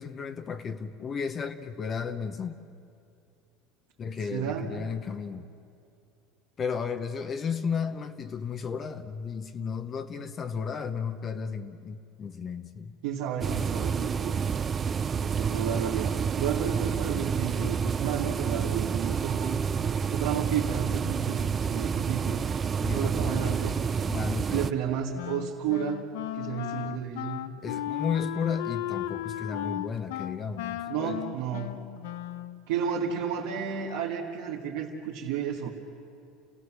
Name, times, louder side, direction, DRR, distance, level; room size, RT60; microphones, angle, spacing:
voice 1, 0.0-2.6 4.0-5.5 6.6-12.9 22.8-23.5 24.1-24.7 27.6-31.2, left 6 dB, 35° left, 8 dB, 0.9 m, -34 dB
voice 2, 4.3-4.7 13.0-14.4 15.1-19.6 20.1-22.5 22.9-23.7 24.5-26.0 26.3-27.4 30.9-31.7 32.7-35.7, right 8 dB, 80° right, -4 dB, 2.1 m, -32 dB
sound 1, 13.4-24.7, right 6 dB, 30° right, 0.6 m, -29 dB
Wind instrument woodwind instrument, 25.1-32.6, left 13 dB, 85° left, 0.7 m, -35 dB
29.0 x 16.5 x 7.5 m, 2.5 s
supercardioid pair, 120°, 0 cm